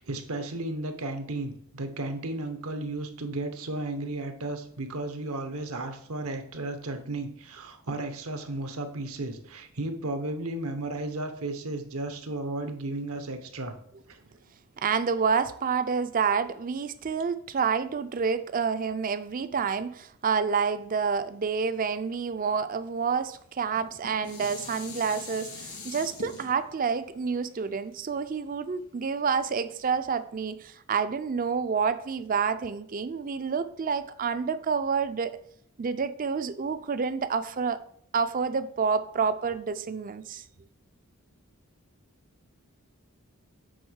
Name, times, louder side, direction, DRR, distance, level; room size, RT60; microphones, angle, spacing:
voice 1, 0.0-13.7 14.1-14.2, right 2 dB, 75° right, 8 dB, 1.0 m, -34 dB
voice 2, 14.8-35.4 35.8-37.8 38.1-40.4, right 6 dB, 40° right, 13 dB, 0.4 m, -28 dB
Dishes pots and pans, 23.6-28.9 29.5-29.6, left 3 dB, 90° left, 3.3 m, -44 dB
7.9 x 3.5 x 6.3 m, 0.66 s
head